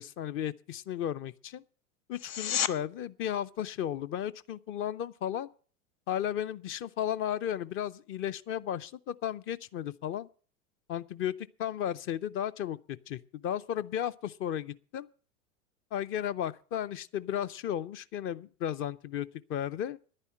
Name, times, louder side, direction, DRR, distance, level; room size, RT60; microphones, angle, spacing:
voice 1, 0.0-1.6 2.1-5.5 6.1-10.3 10.9-11.3 11.6-15.1 15.9-20.0, left 10 dB, 30° left, 0.5 m, -34 dB
sound 1, 2.1-2.8 14.1-14.2, left 9 dB, 70° left, 0.9 m, -31 dB
10.5 x 9.8 x 7.3 m
hypercardioid pair, 100°, 44 cm